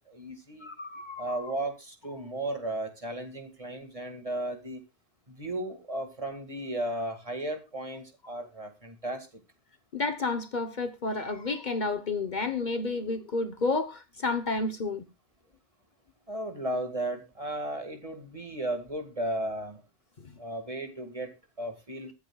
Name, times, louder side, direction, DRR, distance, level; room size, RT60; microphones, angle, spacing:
voice 1, 0.1-0.7 1.2-4.8 5.3-9.3 16.3-19.8 20.4-22.1, right 1 dB, 35° right, 2.0 m, -35 dB
voice 2, 0.6-1.4 9.9-15.1, left 3 dB, 50° left, 1.0 m, -31 dB
22.5 x 8.1 x 2.3 m
omnidirectional pair, 1.1 m